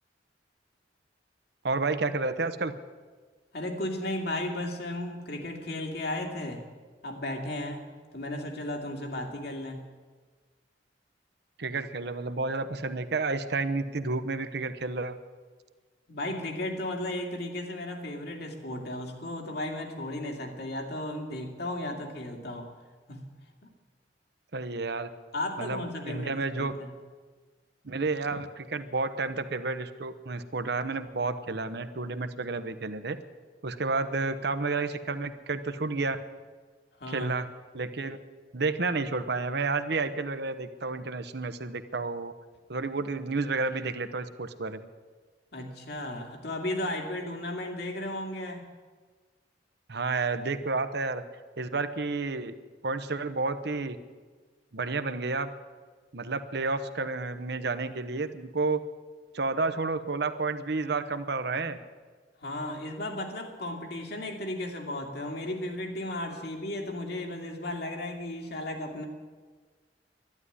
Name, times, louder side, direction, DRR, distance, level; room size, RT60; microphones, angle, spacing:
voice 1, 1.6-2.7 11.6-15.2 24.5-25.1 25.6-26.7 27.8-33.2 33.6-36.2 37.1-37.5 37.7-38.2 38.5-42.3 42.7-44.9 49.9-51.2 51.6-52.5 52.8-54.0 54.7-55.5 56.1-58.8 59.3-61.8, right 3 dB, 65° right, 11 dB, 0.9 m, -31 dB
voice 2, 3.5-6.6 7.0-7.8 8.1-9.8 16.1-22.7 23.1-23.3 23.6-23.7 25.3-26.9 37.0-37.3 45.5-48.6 62.4-69.1, left 1 dB, 65° left, 2 dB, 2.4 m, -35 dB
12.0 x 11.0 x 9.9 m, 1.4 s
head